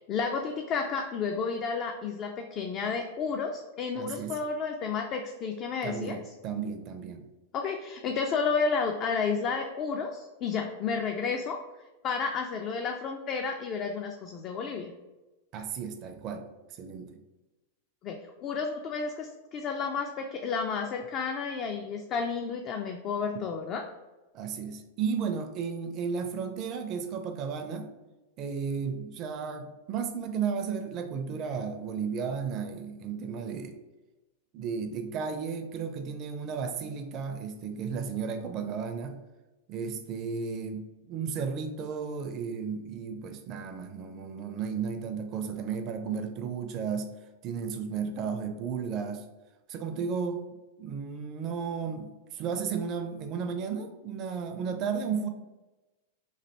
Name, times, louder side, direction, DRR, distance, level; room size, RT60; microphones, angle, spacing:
voice 1, 0.0-6.2 7.5-11.6 12.0-14.9 18.0-23.8, left 5 dB, 40° left, 3 dB, 0.3 m, -31 dB
voice 2, 4.0-4.4 5.8-7.3 15.5-16.5 16.8-17.2 24.3-27.9 28.4-33.8 34.5-39.2 39.7-40.8 41.1-47.1 47.4-49.3 49.7-50.4 50.8-55.3, right 6 dB, 40° right, 7 dB, 0.4 m, -34 dB
3.1 x 2.5 x 2.8 m, 1.1 s
hypercardioid pair, 100°, 0 cm